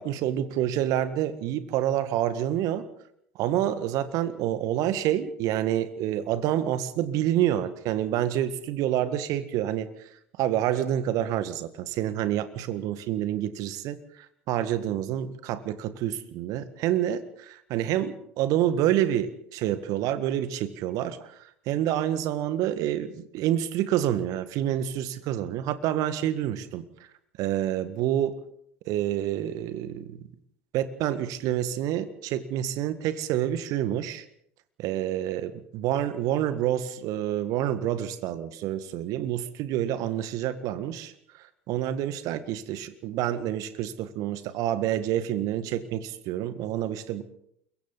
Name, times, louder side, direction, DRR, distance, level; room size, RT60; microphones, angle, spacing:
voice 1, 0.0-2.9 3.4-9.9 10.4-21.4 21.7-26.8 27.4-28.4 28.9-30.3 30.7-34.3 34.8-41.1 41.7-47.2, right 11 dB, 55° right, 12 dB, 1.7 m, -28 dB
29.0 x 22.5 x 4.2 m, 0.72 s
figure-of-eight pair, 70°, 7 cm